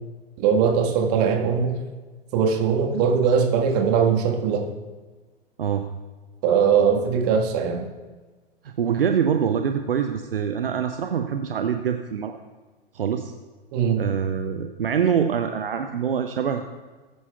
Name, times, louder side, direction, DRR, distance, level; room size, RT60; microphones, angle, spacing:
voice 1, 0.4-1.7 2.3-4.7 6.4-7.8 13.7-14.0, right 6 dB, 40° right, 2 dB, 1.6 m, -20 dB
voice 2, 8.6-12.4 12.9-13.3 14.0-16.8, right 7 dB, 70° right, 7 dB, 0.7 m, -25 dB
19.5 x 9.5 x 2.4 m, 1.3 s
figure-of-eight pair, 100°, 29 cm